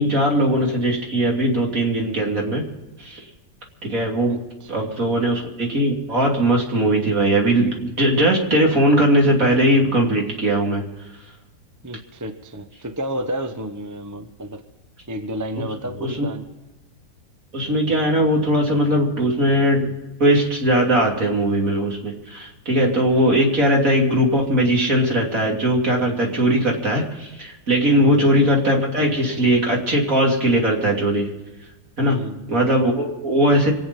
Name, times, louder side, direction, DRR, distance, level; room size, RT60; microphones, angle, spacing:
voice 1, 0.0-2.6 3.0-3.2 3.8-4.4 4.7-10.9 16.0-16.3 17.5-19.9 20.2-31.3 32.0-32.2 32.5-33.7, right 1 dB, 50° right, -1 dB, 3.5 m, -19 dB
voice 2, 4.3-5.0 11.8-14.6 15.1-16.5 27.9-28.3 32.0-32.5, right 1 dB, 15° right, 7 dB, 0.7 m, -31 dB
25.5 x 8.9 x 5.4 m, 1.1 s
omnidirectional pair, 1.8 m